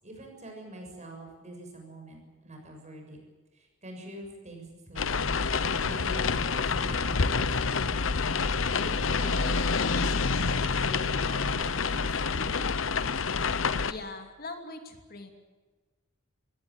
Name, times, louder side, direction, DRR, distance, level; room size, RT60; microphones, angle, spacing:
voice 1, 0.0-3.2 3.5-5.4 5.8-8.1 8.8-12.6, right 1 dB, 35° right, 3 dB, 7.1 m, -44 dB
sound 1, 5.0-13.9, left 4 dB, 80° left, 1.0 m, -27 dB
voice 2, 13.9-15.3, left 3 dB, 50° left, 5 dB, 2.7 m, -41 dB
22.0 x 17.0 x 8.9 m, 1.3 s
head